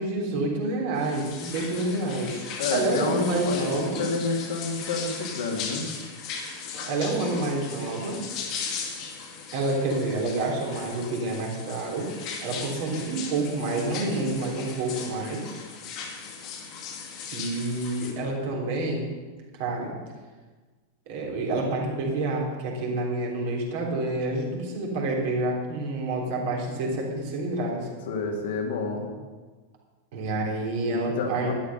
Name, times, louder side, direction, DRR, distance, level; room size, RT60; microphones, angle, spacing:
voice 1, 0.0-2.4 2.7-4.0 6.9-8.2 9.5-12.1 12.4-15.6 17.3-19.0 19.6-20.0 21.1-27.9 30.1-31.5, right 2 dB, 50° right, -2 dB, 3.5 m, -28 dB
sound 1, 1.0-18.1, left 6 dB, 40° left, 2.2 m, -38 dB
voice 2, 2.6-5.9 28.1-29.1 30.9-31.5, left 3 dB, 55° left, 1 dB, 2.2 m, -29 dB
13.0 x 10.5 x 5.4 m, 1.4 s
figure-of-eight pair, 90°, 0 cm